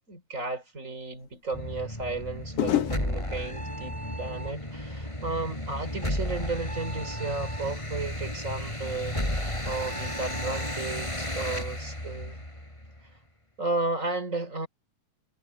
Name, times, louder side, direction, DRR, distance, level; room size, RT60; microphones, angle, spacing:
voice 1, 0.1-12.4 13.6-14.7, right 3 dB, 25° right, 4.1 m, -34 dB
sound 1, 1.1-1.3 2.6-5.7 6.0-6.4, left 12 dB, 60° left, 2.1 m, -33 dB
sound 2, 1.5-13.0, left 1 dB, 10° left, 5.6 m, -33 dB
omnidirectional pair, 3.5 m